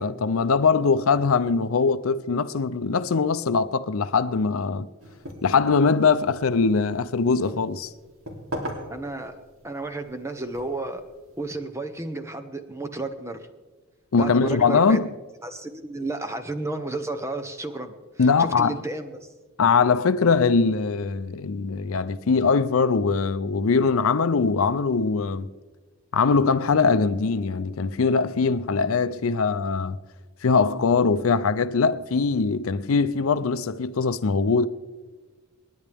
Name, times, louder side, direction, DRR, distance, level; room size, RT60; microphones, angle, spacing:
voice 1, 0.0-4.9 5.4-7.9 14.1-15.1 18.2-18.8 19.6-25.5 26.1-30.0 30.4-34.7, left 4 dB, 75° left, 0.5 m, -22 dB
sound 1, 5.0-11.5, equal, 85° right, 3.1 m, -40 dB
voice 2, 8.9-9.3 9.6-11.0 11.4-13.5 14.2-15.0 15.4-19.1, right 2 dB, 15° right, 0.8 m, -32 dB
28.0 x 10.0 x 3.5 m
head